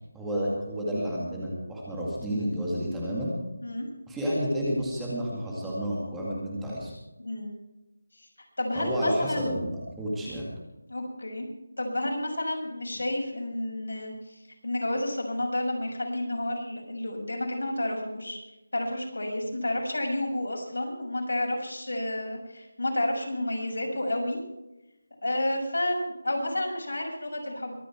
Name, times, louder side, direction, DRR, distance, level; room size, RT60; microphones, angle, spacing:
voice 1, 0.1-3.3 4.1-6.9 8.8-10.5, equal, 5° right, -6 dB, 2.1 m, -30 dB
voice 2, 7.2-7.5 8.2-8.3 8.6-9.5 10.9-11.5 11.8-18.4 18.7-24.4 25.2-27.8, left 1 dB, 90° left, 1 dB, 6.2 m, -30 dB
23.0 x 9.9 x 4.6 m, 0.96 s
figure-of-eight pair, 175°, 0 cm